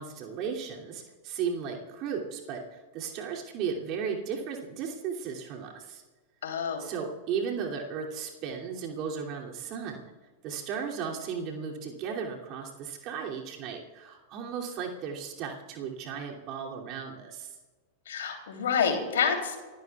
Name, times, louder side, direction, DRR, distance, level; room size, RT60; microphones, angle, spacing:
voice 1, 0.0-6.0 6.8-10.1 10.4-17.5, right 6 dB, 40° right, -1 dB, 2.8 m, -35 dB
voice 2, 6.4-6.8 18.1-19.6, left 6 dB, 60° left, 4 dB, 3.1 m, -28 dB
28.5 x 16.0 x 2.4 m, 1.3 s
figure-of-eight pair, 90°, 0 cm